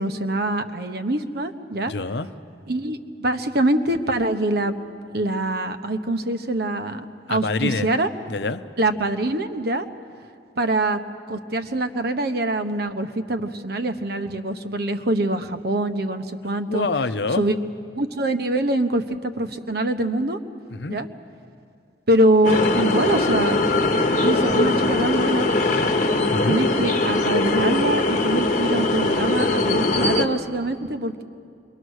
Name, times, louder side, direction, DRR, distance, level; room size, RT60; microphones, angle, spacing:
voice 1, 0.0-1.9 2.7-4.7 5.1-7.0 7.3-8.1 8.8-9.9 10.6-11.0 11.3-16.9 17.3-17.5 18.0-20.4 20.9-21.1 22.1-23.6 24.2-25.5 26.4-31.2, right 1 dB, 60° right, 9 dB, 1.0 m, -24 dB
voice 2, 1.9-2.3 7.3-7.9 8.3-8.6 16.7-17.4 20.7-21.0 26.3-26.6, left 3 dB, 65° left, 12 dB, 0.7 m, -25 dB
sound 1, 22.4-30.3, left 2 dB, 45° left, 1.1 m, -21 dB
27.5 x 23.0 x 6.4 m, 2.4 s
head